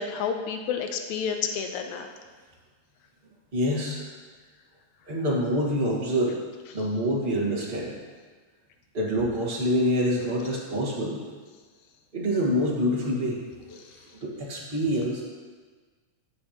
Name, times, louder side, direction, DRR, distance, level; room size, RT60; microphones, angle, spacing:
voice 1, 0.0-2.1, left 6 dB, 85° left, 5 dB, 2.1 m, -30 dB
voice 2, 3.5-4.0 5.1-6.4 6.7-7.9 8.9-11.2 12.1-13.8 14.2-15.2, equal, 25° right, -5 dB, 1.2 m, -26 dB
15.5 x 5.5 x 2.9 m, 1.4 s
omnidirectional pair, 3.3 m